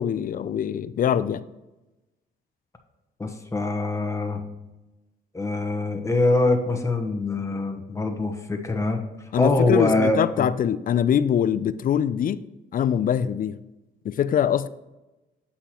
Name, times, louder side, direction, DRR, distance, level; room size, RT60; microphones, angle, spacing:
voice 1, 0.0-1.4 9.3-12.4 12.7-13.6 14.0-14.7, left 9 dB, 45° left, 0.4 m, -23 dB
voice 2, 3.2-4.4 5.3-9.0 9.4-10.5, left 2 dB, 15° left, 1.1 m, -24 dB
8.3 x 5.7 x 3.0 m
cardioid pair, 90°, 20 cm